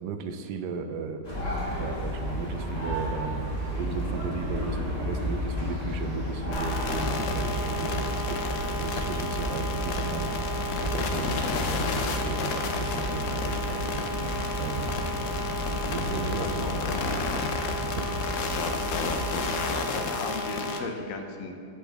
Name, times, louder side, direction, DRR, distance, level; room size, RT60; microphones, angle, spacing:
voice 1, 0.0-1.2 1.8-8.4 8.7-10.3 10.8-13.9 14.6-15.0 15.9-17.0 17.7-18.2, right 5 dB, 75° right, 7 dB, 1.1 m, -35 dB
sound 1, 1.2-19.6, equal, 25° left, 1.5 m, -32 dB
sound 2, 6.5-20.8, left 3 dB, 85° left, 0.6 m, -31 dB
voice 2, 16.4-17.3 19.9-21.5, left 4 dB, 65° left, 3 dB, 0.9 m, -36 dB
8.0 x 6.0 x 3.4 m, 2.6 s
omnidirectional pair, 2.0 m